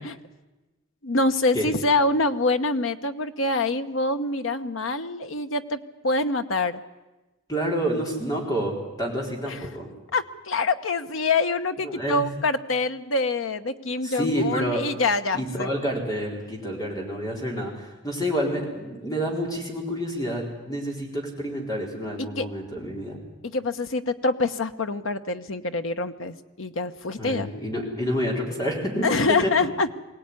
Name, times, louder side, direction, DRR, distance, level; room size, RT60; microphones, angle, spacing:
voice 1, 1.0-6.8 9.5-9.6 10.1-15.7 22.2-22.5 23.4-27.5 29.0-29.9, left 3 dB, 80° left, 9 dB, 1.1 m, -25 dB
voice 2, 7.5-9.9 11.8-12.3 14.0-14.8 15.3-23.2 27.2-29.1 29.4-29.5, equal, 20° left, 0 dB, 4.4 m, -28 dB
22.5 x 17.5 x 9.7 m, 1.1 s
head